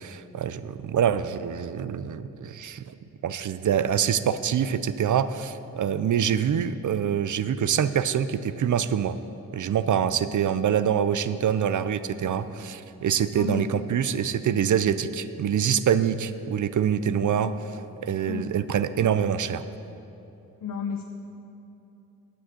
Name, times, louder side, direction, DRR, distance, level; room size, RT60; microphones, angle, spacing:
voice 1, 0.0-2.9 3.2-9.2 9.5-19.6, right 8 dB, 60° right, 13 dB, 0.5 m, -25 dB
voice 2, 13.3-13.7 17.4-17.6 18.3-18.5 20.6-21.0, left 6 dB, 70° left, 4 dB, 0.6 m, -32 dB
9.7 x 6.3 x 7.8 m, 2.9 s
wide cardioid pair, 115°, 35 cm